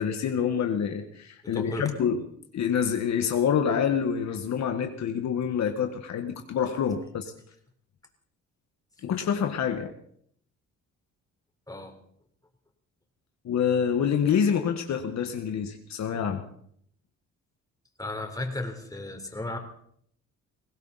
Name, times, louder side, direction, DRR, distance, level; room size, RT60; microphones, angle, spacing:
voice 1, 0.0-2.2 2.5-7.3 9.0-9.9 13.4-16.4, left 7 dB, 65° left, 6 dB, 1.5 m, -27 dB
voice 2, 1.4-1.9 11.7-11.9 18.0-19.6, left 2 dB, 10° left, 3 dB, 3.6 m, -34 dB
21.0 x 16.5 x 4.1 m, 0.66 s
cardioid pair, 90°, 30 cm